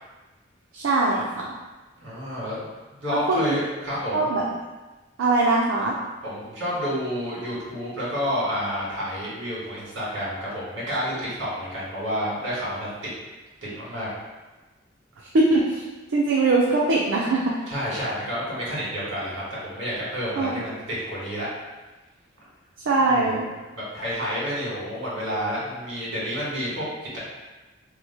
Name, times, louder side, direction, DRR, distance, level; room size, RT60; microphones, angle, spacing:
voice 1, 0.7-1.5 3.3-3.6 4.1-4.4 5.2-5.9 15.3-15.8 16.1-17.6 20.4-20.5 22.9-23.5, right 2 dB, 90° right, -4 dB, 0.4 m, -21 dB
voice 2, 2.0-2.6 3.0-4.3 6.2-13.1 13.6-14.1 17.7-21.5 23.0-23.3 23.7-27.2, equal, 75° right, -7 dB, 1.5 m, -29 dB
3.0 x 2.0 x 4.1 m, 1.2 s
head